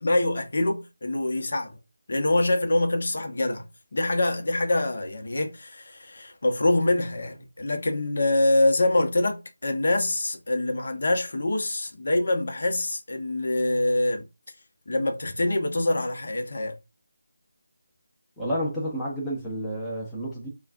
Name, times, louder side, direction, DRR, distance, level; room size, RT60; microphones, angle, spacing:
voice 1, 0.0-1.8 2.1-3.7 3.9-14.2 14.9-16.8, left 2 dB, 55° left, 1.0 m, -25 dB
voice 2, 18.4-20.5, equal, 5° left, 0.8 m, -30 dB
5.6 x 2.4 x 2.6 m
figure-of-eight pair, 165°, 0 cm